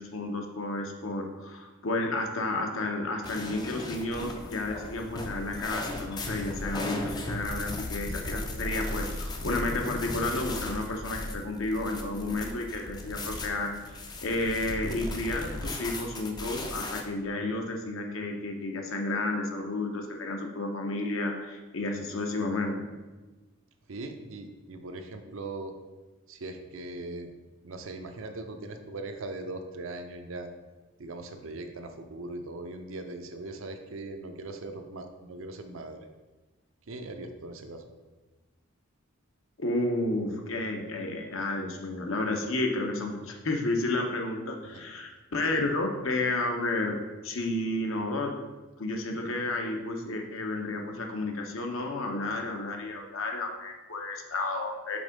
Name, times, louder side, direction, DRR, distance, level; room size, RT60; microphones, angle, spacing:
voice 1, 0.0-22.9 39.6-47.0 47.2-48.3 48.8-55.0, left 2 dB, 70° left, 2 dB, 0.8 m, -31 dB
sound 1, 3.2-17.0, left 2 dB, 20° left, 0.4 m, -36 dB
voice 2, 23.9-25.7 26.3-27.3 27.6-30.5 31.0-36.0 36.9-37.9 44.7-44.8 45.5-45.6, right 2 dB, 65° right, 6 dB, 0.6 m, -40 dB
5.2 x 3.6 x 5.1 m, 1.2 s
head